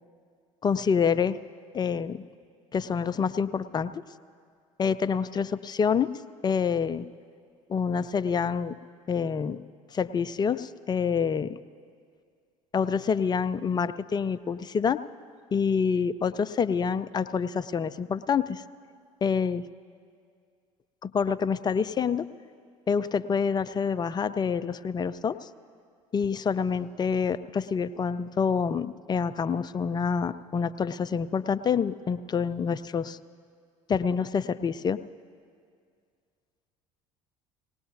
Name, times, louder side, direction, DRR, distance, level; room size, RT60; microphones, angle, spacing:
voice 1, 0.6-1.4 1.7-2.2 2.7-4.0 4.8-6.1 6.4-7.1 7.7-8.8 9.1-9.6 9.9-11.6 12.7-15.0 15.5-18.6 19.2-19.6 21.0-22.3 22.9-25.5 26.1-33.2 33.9-35.0, left 6 dB, 25° left, 14 dB, 0.4 m, -27 dB
19.5 x 18.0 x 2.6 m, 2.2 s
figure-of-eight pair, 60°, 18 cm